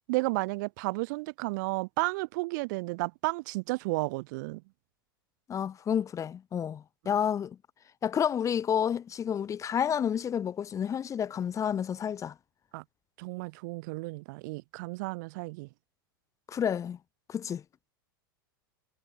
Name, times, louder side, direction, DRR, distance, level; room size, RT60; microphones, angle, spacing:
voice 1, 0.1-4.6 12.7-12.8 13.2-15.7, right 25 dB, 55° right, 7.1 m, -32 dB
voice 2, 5.5-7.6 8.0-12.3 16.5-17.0 17.3-17.6, left 8 dB, 25° left, 7.1 m, -30 dB
figure-of-eight pair, 90°, 12 cm